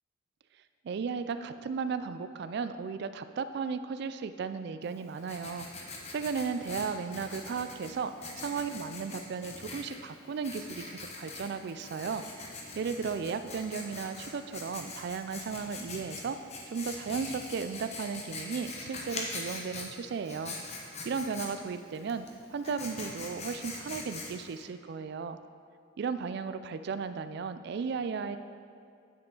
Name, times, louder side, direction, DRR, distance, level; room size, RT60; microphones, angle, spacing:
voice 1, 0.8-5.7 6.1-8.1 8.4-12.2 12.8-16.4 16.7-20.6 21.0-25.4 26.0-28.4, right 5 dB, 55° right, 11 dB, 0.3 m, -35 dB
Writing, 4.8-24.6, left 3 dB, 35° left, 0.8 m, -43 dB
9.3 x 4.9 x 3.7 m, 2.5 s
head